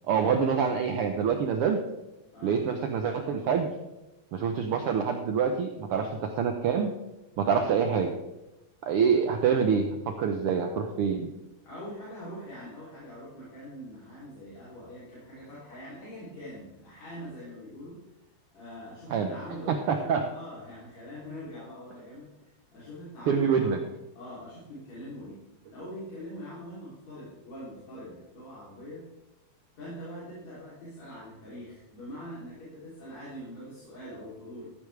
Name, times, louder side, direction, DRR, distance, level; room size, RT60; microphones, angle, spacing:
voice 1, 0.1-1.8 2.4-3.7 4.3-6.0 6.4-6.9 7.4-8.1 8.8-11.3 19.1-19.4 19.7-20.3 23.3-23.8, right 6 dB, 75° right, 5 dB, 1.3 m, -26 dB
voice 2, 11.6-18.0 18.5-23.8 24.2-25.4 25.7-29.1 29.8-34.7, equal, 65° left, -9 dB, 4.3 m, -43 dB
14.0 x 9.7 x 3.3 m, 0.98 s
omnidirectional pair, 3.4 m